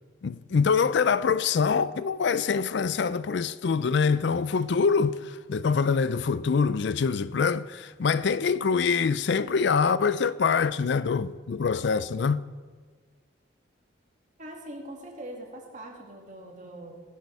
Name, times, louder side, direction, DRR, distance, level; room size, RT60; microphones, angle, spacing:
voice 1, 0.2-12.5, left 5 dB, 60° left, 0.4 m, -25 dB
voice 2, 14.4-16.9, right 1 dB, 40° right, 2.4 m, -42 dB
17.0 x 10.5 x 4.8 m
head